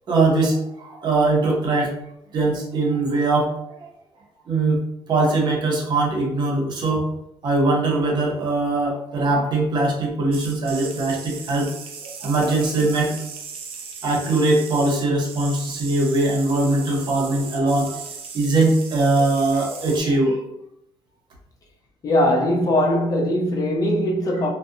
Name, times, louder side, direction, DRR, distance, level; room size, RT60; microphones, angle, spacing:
voice 1, 0.1-1.9 2.3-3.9 4.5-4.8 5.1-7.0 7.4-11.7 12.2-13.2 14.0-18.0 18.3-20.4, right 2 dB, 50° right, 0.8 m, -21 dB
sound 1, 10.3-20.0, right 5 dB, 70° right, 0.5 m, -37 dB
voice 2, 22.0-24.5, left 1 dB, 40° left, 0.5 m, -20 dB
2.6 x 2.1 x 2.5 m
cardioid pair, 130°, 10 cm